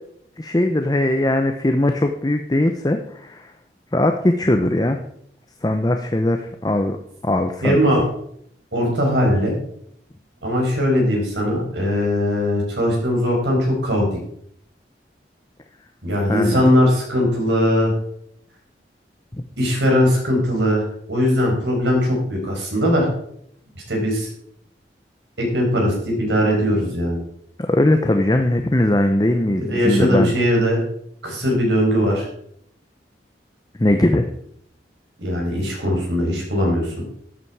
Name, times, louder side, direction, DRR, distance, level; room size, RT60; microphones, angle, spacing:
voice 1, 0.4-3.5 3.9-5.0 5.6-7.0 7.2-7.8 16.3-16.7 19.3-19.4 27.6-30.3 33.8-34.3, left 1 dB, 20° left, 6 dB, 0.7 m, -20 dB
voice 2, 7.6-8.0 8.7-9.5 10.4-14.1 16.0-17.9 19.6-23.1 23.9-24.3 25.4-27.2 29.6-30.8 31.2-32.3 35.2-36.9, equal, 80° right, -1 dB, 5.2 m, -20 dB
12.5 x 8.6 x 4.7 m, 0.68 s
head